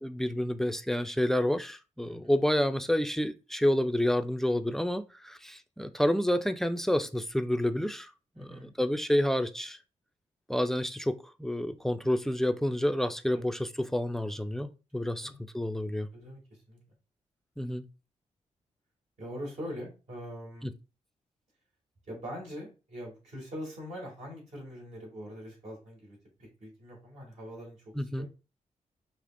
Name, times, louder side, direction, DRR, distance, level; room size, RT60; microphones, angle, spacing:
voice 1, 0.0-8.1 8.4-9.8 10.5-16.1 17.6-17.8 20.6-20.7 28.0-28.3, left 1 dB, 5° left, 0.3 m, -29 dB
voice 2, 2.0-2.4 8.4-8.7 13.3-13.4 14.9-15.3 16.1-16.8 19.2-20.7 22.1-28.3, equal, 75° right, 2.3 m, -43 dB
5.0 x 2.9 x 2.5 m
cardioid pair, 110°, 13 cm